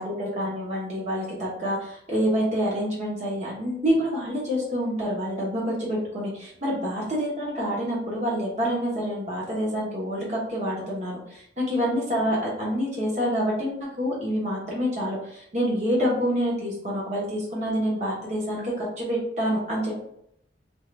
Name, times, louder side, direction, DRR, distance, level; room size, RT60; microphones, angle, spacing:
voice 1, 0.0-20.0, equal, 40° right, -5 dB, 1.1 m, -27 dB
4.5 x 2.5 x 3.3 m, 0.74 s
head